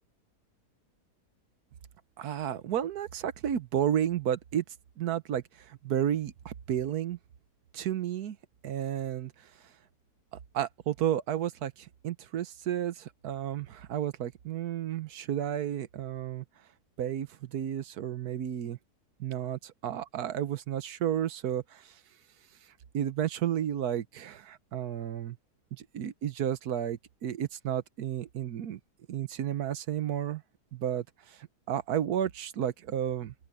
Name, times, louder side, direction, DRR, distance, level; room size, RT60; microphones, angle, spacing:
voice 1, 2.2-4.6 5.0-7.2 7.7-8.4 8.6-9.5 10.5-16.4 17.0-18.8 19.2-22.0 22.9-25.4 25.7-28.8 29.1-30.4 30.7-33.3, right 10 dB, 75° right, 1.4 m, -32 dB
open air
omnidirectional pair, 1.7 m